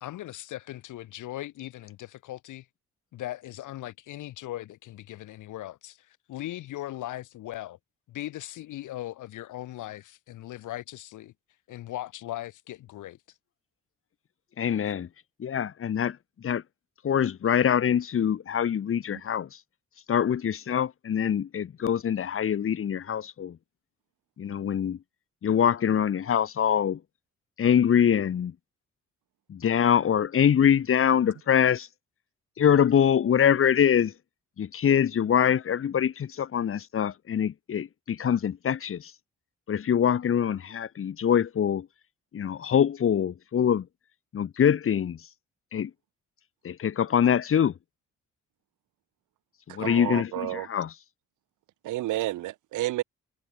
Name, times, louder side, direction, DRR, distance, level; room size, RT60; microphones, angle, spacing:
voice 1, 0.0-2.7 3.1-7.8 8.1-11.3 11.7-13.2, left 14 dB, 80° left, 2.4 m, -39 dB
voice 2, 14.6-15.1 15.4-16.6 17.0-19.5 20.1-23.6 24.4-25.0 25.4-27.0 27.6-28.5 29.5-31.9 32.6-34.1 34.6-39.1 39.7-41.9 42.3-43.9 44.3-45.2 45.7-45.9 46.6-47.7 49.7-50.9, left 8 dB, 45° left, 1.3 m, -24 dB
voice 3, 49.8-50.7 51.8-53.0, right 16 dB, 80° right, 1.1 m, -30 dB
cardioid pair, 90°, 30 cm